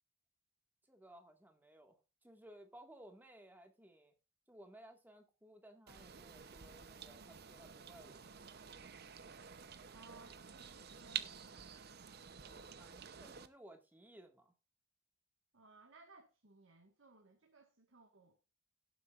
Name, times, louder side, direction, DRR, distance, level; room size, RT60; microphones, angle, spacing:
voice 1, 0.9-4.1 4.5-8.3 12.5-14.5, right 1 dB, 10° right, 1.8 m, -59 dB
sound 1, 5.9-13.5, right 8 dB, 50° right, 0.8 m, -50 dB
voice 2, 9.9-11.7 15.5-18.4, right 3 dB, 70° right, 1.6 m, -62 dB
17.0 x 8.0 x 2.5 m
head